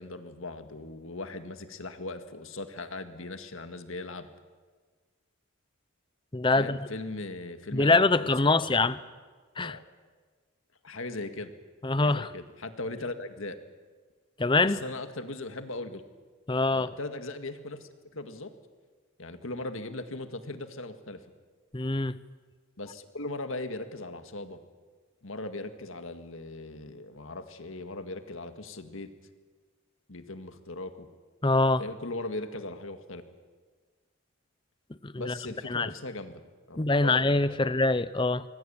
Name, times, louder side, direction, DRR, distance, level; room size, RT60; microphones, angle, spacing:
voice 1, 0.0-4.3 6.6-8.9 9.6-9.9 10.8-11.5 12.0-13.6 14.6-16.0 16.7-18.5 19.2-21.2 22.8-24.6 25.2-29.1 30.1-31.1 31.8-33.2 35.2-36.4 36.7-37.7, left 2 dB, 70° left, 8 dB, 1.9 m, -39 dB
voice 2, 6.3-6.9 7.7-8.9 9.6-9.8 11.8-12.3 14.4-14.8 16.5-16.9 21.7-22.1 31.4-31.8 35.0-35.4 35.7-35.9 36.8-38.4, left 3 dB, 20° left, 15 dB, 0.7 m, -24 dB
25.5 x 20.5 x 8.8 m, 1.4 s
head